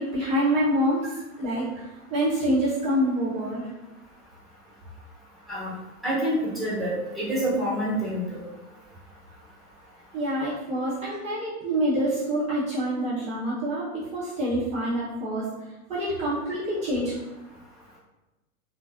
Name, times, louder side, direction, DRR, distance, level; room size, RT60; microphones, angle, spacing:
voice 1, 0.0-1.7 2.1-3.7 10.1-15.5 15.9-17.1, equal, 15° right, -9 dB, 0.5 m, -26 dB
voice 2, 6.0-8.4 11.0-11.1, right 1 dB, ahead, -9 dB, 0.9 m, -27 dB
2.5 x 2.4 x 2.2 m, 1.1 s
hypercardioid pair, 115°, 46 cm